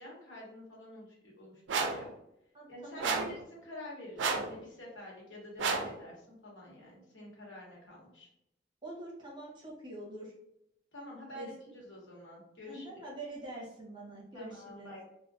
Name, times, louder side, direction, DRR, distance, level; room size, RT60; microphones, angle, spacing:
voice 1, 0.0-2.1 2.7-8.3 10.9-13.0 14.3-15.0, left 1 dB, 90° left, -3 dB, 1.1 m, -48 dB
sound 1, 1.7-2.1 3.0-3.4 4.2-4.6 5.6-6.0, right 4 dB, 70° right, 0.3 m, -31 dB
voice 2, 2.5-3.3 8.8-10.3 11.3-11.5 12.7-14.9, right 1 dB, 25° right, -4 dB, 0.7 m, -45 dB
2.3 x 2.2 x 2.6 m, 0.79 s
head